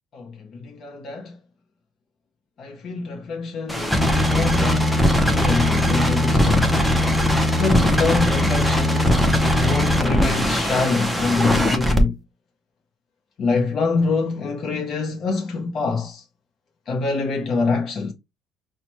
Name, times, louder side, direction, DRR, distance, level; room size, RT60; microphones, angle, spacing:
voice 1, 0.1-1.3 2.6-6.7 7.5-9.1 9.6-12.2 13.4-16.2 16.9-18.1, left 4 dB, 40° left, 0.6 m, -25 dB
sound 1, 3.7-12.0, left 1 dB, ahead, 0.6 m, -19 dB
5.6 x 2.1 x 2.9 m
cardioid pair, 155°, 0 cm